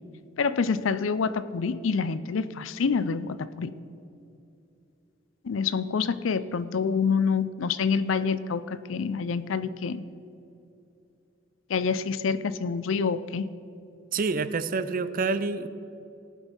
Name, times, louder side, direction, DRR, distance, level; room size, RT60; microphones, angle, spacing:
voice 1, 0.4-3.7 5.4-10.0 11.7-13.5, left 5 dB, 80° left, 15 dB, 0.5 m, -27 dB
voice 2, 14.1-15.7, right 4 dB, 45° right, 13 dB, 0.5 m, -27 dB
18.0 x 6.3 x 5.3 m, 2.7 s
head